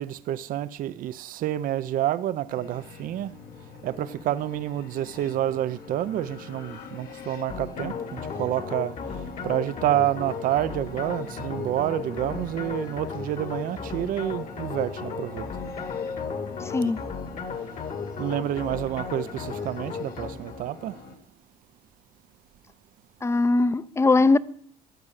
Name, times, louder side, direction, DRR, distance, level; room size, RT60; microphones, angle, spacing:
voice 1, 0.0-3.3 3.8-8.9 9.4-15.4 16.8-16.9 18.2-20.9, right 12 dB, 60° right, 0.5 m, -28 dB
sound 1, 2.5-21.1, left 5 dB, 70° left, 2.0 m, -43 dB
sound 2, 7.5-20.7, left 5 dB, 50° left, 2.1 m, -35 dB
voice 2, 16.6-17.0 23.2-24.4, left 3 dB, 15° left, 0.6 m, -20 dB
14.0 x 8.6 x 6.5 m
cardioid pair, 90°, 16 cm